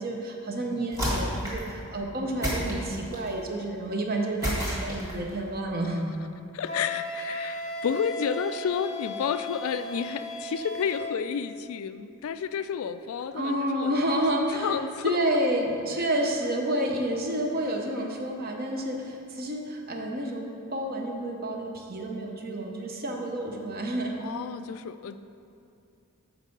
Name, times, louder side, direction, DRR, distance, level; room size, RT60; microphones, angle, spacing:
voice 1, 0.0-6.1 13.3-24.3, right 1 dB, 45° right, 1 dB, 0.8 m, -29 dB
sound 1, 0.9-1.7 2.4-3.3 4.4-5.3, equal, 15° right, 1.7 m, -30 dB
voice 2, 6.5-14.2 14.6-15.2 24.2-25.2, left 7 dB, 75° left, 12 dB, 0.3 m, -31 dB
Wind instrument woodwind instrument, 6.6-11.2, left 1 dB, 30° left, 0.7 m, -36 dB
7.3 x 4.6 x 5.3 m, 2.6 s
head